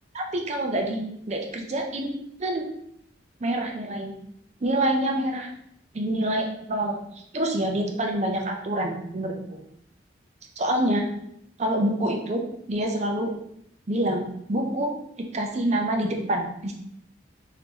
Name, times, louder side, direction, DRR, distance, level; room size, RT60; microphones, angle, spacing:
voice 1, 0.1-2.1 2.4-2.6 3.4-4.2 4.6-5.5 5.9-7.0 7.3-9.6 10.6-11.0 11.6-12.4 12.7-13.3 13.9-14.9 15.2-16.7, right 1 dB, 35° right, 2 dB, 0.5 m, -26 dB
3.7 x 2.8 x 2.9 m, 0.73 s
head